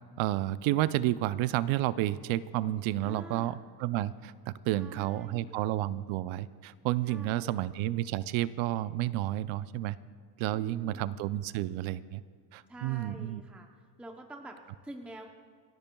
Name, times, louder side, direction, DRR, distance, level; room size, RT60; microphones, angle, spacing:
voice 1, 0.2-10.0 10.4-12.2 12.5-13.4, right 14 dB, 75° right, 16 dB, 0.6 m, -31 dB
voice 2, 3.0-3.6 4.7-5.7 7.0-7.7 10.5-11.1 12.7-13.7 14.0-15.3, right 1 dB, 5° right, 3 dB, 0.7 m, -47 dB
28.5 x 14.0 x 2.3 m, 2.1 s
cardioid pair, 130°, 47 cm